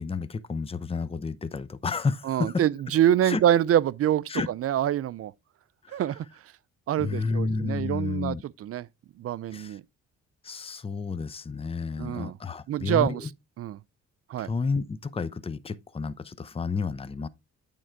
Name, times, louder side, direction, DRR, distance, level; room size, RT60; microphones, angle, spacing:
voice 1, 0.0-2.7 3.2-3.4 4.3-4.5 5.8-6.0 7.0-8.4 9.5-9.8 10.4-13.3 14.4-17.3, left 4 dB, 20° left, 0.6 m, -31 dB
voice 2, 2.3-5.3 5.9-6.3 6.9-8.9 9.2-9.8 12.0-12.4 12.7-13.2 13.6-13.8 14.3-14.5, right 11 dB, 50° right, 0.4 m, -25 dB
8.9 x 3.7 x 4.5 m
cardioid pair, 90°, 30 cm